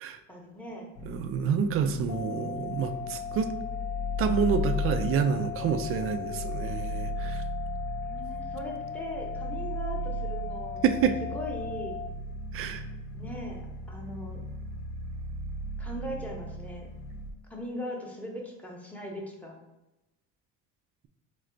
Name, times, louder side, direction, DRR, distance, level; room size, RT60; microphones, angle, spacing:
voice 1, 0.3-0.9 8.0-10.8 11.3-11.9 13.1-13.6 13.9-14.4 15.8-16.9 17.5-19.6, equal, 5° left, -1 dB, 0.8 m, -39 dB
sound 1, 0.9-17.3, left 1 dB, 50° left, 0.7 m, -36 dB
voice 2, 1.0-3.5 4.2-7.4 10.8-11.2 12.5-12.8, right 7 dB, 40° right, 9 dB, 0.4 m, -28 dB
sound 2, 2.1-12.1, left 7 dB, 80° left, 0.5 m, -38 dB
3.7 x 3.3 x 3.8 m, 0.97 s
cardioid pair, 140°, 35 cm